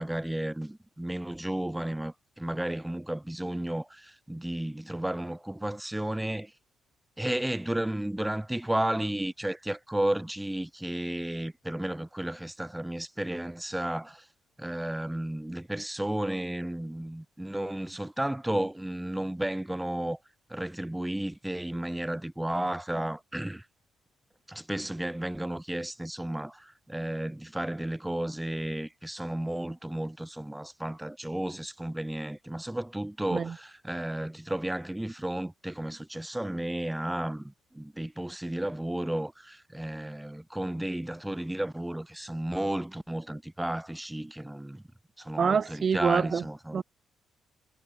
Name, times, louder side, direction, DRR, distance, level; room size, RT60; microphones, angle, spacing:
voice 1, 0.0-6.5 7.2-14.3 14.6-20.2 20.5-23.7 24.5-44.8 45.2-46.8, right 1 dB, 5° right, 1.3 m, -33 dB
voice 2, 45.4-46.4 46.7-46.8, right 6 dB, 45° right, 0.4 m, -26 dB
cardioid pair, 90°, 0 cm